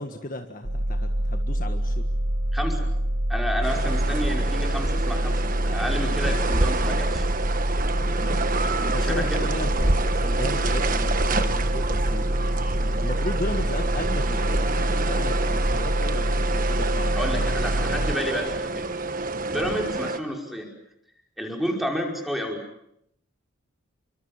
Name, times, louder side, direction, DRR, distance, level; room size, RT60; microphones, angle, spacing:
voice 1, 0.0-2.1 8.0-8.5 8.9-12.2 12.7-17.5 19.6-19.8, left 1 dB, 40° left, 6 dB, 1.7 m, -35 dB
sound 1, 0.6-18.1, right 1 dB, 90° right, 2.6 m, -26 dB
voice 2, 2.5-2.9 3.3-7.3 8.9-9.5 17.2-18.9 19.5-20.7 21.4-22.6, equal, ahead, 1 dB, 5.3 m, -30 dB
sound 2, 3.6-20.2, right 3 dB, 40° right, 1.5 m, -28 dB
29.5 x 24.5 x 7.4 m, 0.76 s
head